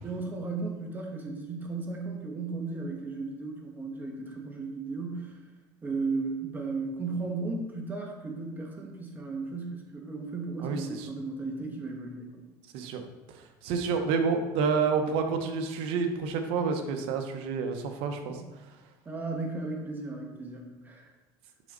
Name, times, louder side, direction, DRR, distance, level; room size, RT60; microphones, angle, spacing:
voice 1, 0.0-5.4 5.8-12.4 18.3-18.4 19.0-21.1, right 3 dB, 20° right, 0 dB, 1.4 m, -35 dB
voice 2, 10.6-11.1 12.7-13.0 13.6-18.4, right 5 dB, 70° right, 6 dB, 0.9 m, -29 dB
6.4 x 5.1 x 3.9 m, 1.1 s
cardioid pair, 125°, 10 cm